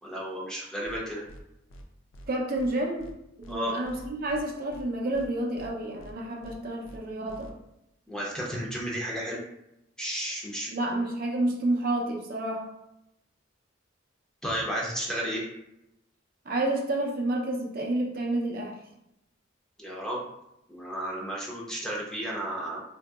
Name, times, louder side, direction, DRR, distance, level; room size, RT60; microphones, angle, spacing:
voice 1, 0.0-1.2 3.5-3.8 8.1-9.4 10.0-10.7 14.4-15.4 19.8-20.3 20.7-22.8, right 1 dB, 5° left, -4 dB, 0.6 m, -33 dB
sound 1, 0.8-1.0 1.3-1.4 1.7-1.8 2.1-2.3 2.6-2.7 3.0-3.1 3.4-3.6 3.8-4.4 4.7-4.8 5.1-5.3 5.6-5.7 6.0-6.1 6.4-6.6 6.8-7.0 7.3-7.5, right 1 dB, 75° left, 0.5 m, -47 dB
voice 2, 2.3-3.1 3.5-7.5 10.7-12.7 16.5-18.7, right 1 dB, 50° right, -1 dB, 0.6 m, -29 dB
3.8 x 2.7 x 2.3 m, 0.85 s
head